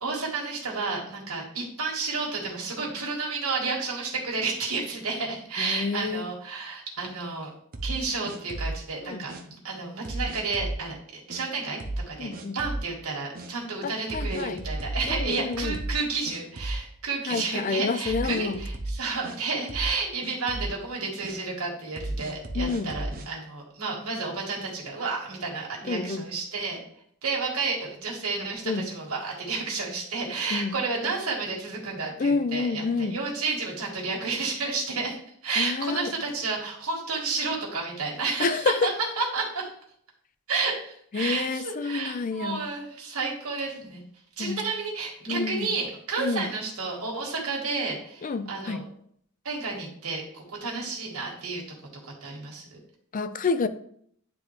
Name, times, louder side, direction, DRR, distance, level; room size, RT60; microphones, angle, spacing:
voice 1, 0.0-7.5 7.8-11.8 12.1-26.8 27.2-39.7 40.5-44.0 44.4-48.8 49.4-51.6 52.0-52.8, right 4 dB, 75° right, -2 dB, 1.6 m, -31 dB
voice 2, 5.6-6.3 9.0-9.3 12.2-12.6 13.8-14.6 15.1-15.8 17.3-18.6 22.5-22.9 25.8-26.3 28.7-28.9 30.5-30.8 32.2-33.2 35.5-36.1 38.4-38.9 41.1-42.6 44.4-44.6 45.3-45.7 46.2-46.5 48.2-48.9 53.1-53.7, left 4 dB, 35° left, 12 dB, 0.4 m, -28 dB
sound 1, 7.7-8.8 9.3-9.4 10.0-10.8 11.3-11.4 11.8-12.1 12.3-12.9 13.3-13.5 14.1-16.0 16.3-17.0 17.3-17.4 18.0-19.4 19.7-20.0 20.2-20.7 21.2-21.4 22.0-23.3, right 1 dB, 40° right, 0.8 m, -33 dB
9.7 x 3.5 x 3.2 m, 0.65 s
head